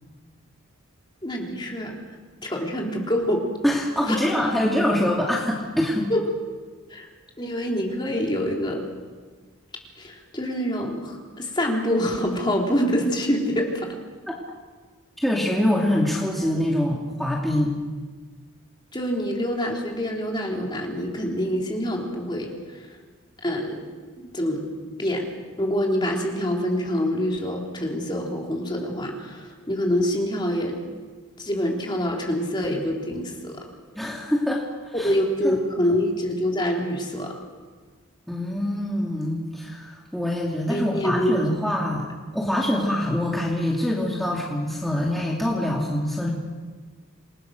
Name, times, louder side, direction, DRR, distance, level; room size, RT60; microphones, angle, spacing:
voice 1, 1.2-2.0 2.4-3.5 4.1-4.4 6.1-6.2 6.9-7.1 7.4-8.9 10.0-14.0 18.9-22.9 23.4-23.9 24.2-24.7 25.0-25.3 25.6-30.8 31.4-33.7 35.0-37.3 40.7-41.4, equal, 20° left, 0 dB, 3.6 m, -26 dB
voice 2, 3.6-6.1 15.2-17.8 33.9-35.1 35.4-35.6 38.3-42.1 42.3-46.3, left 1 dB, ahead, -4 dB, 2.6 m, -24 dB
28.5 x 21.5 x 6.6 m, 1.4 s
head